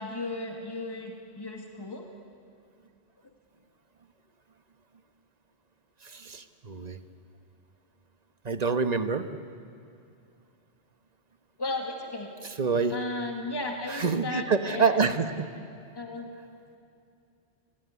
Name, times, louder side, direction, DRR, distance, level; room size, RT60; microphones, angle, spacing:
voice 1, 0.0-2.1 11.6-12.3 12.9-15.0 15.9-16.3, left 2 dB, 20° left, 2 dB, 2.2 m, -35 dB
voice 2, 6.0-7.0 8.4-9.3 12.4-13.0 13.8-15.5, right 5 dB, 40° right, 9 dB, 1.3 m, -27 dB
30.0 x 19.5 x 9.7 m, 2.6 s
omnidirectional pair, 1.1 m